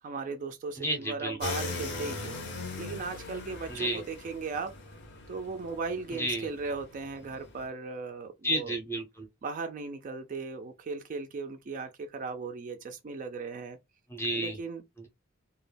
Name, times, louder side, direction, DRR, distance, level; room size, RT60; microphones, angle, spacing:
voice 1, 0.0-4.7 5.3-8.8 9.4-13.8 14.3-14.8, right 4 dB, 40° right, 0.3 m, -37 dB
voice 2, 0.8-1.4 3.7-4.0 6.1-6.5 8.4-9.3 14.1-14.6, right 1 dB, 10° left, 0.6 m, -31 dB
sound 1, 1.4-7.7, left 3 dB, 55° left, 0.6 m, -40 dB
2.2 x 2.1 x 3.2 m
head